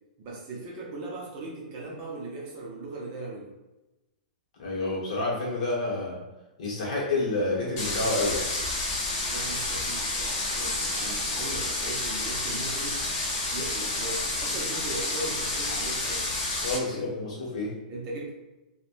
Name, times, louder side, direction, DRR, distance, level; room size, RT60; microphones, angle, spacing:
voice 1, 0.2-3.5 9.3-13.0 13.5-16.3 16.8-17.1 17.9-18.3, right 2 dB, 25° right, -3 dB, 0.5 m, -38 dB
voice 2, 4.6-6.2 6.6-8.5 16.5-17.7, left 2 dB, 50° left, -4 dB, 0.9 m, -29 dB
sound 1, 7.8-16.8, left 2 dB, 25° left, 0.5 m, -30 dB
3.0 x 2.1 x 2.4 m, 1.0 s
hypercardioid pair, 175°, 5 cm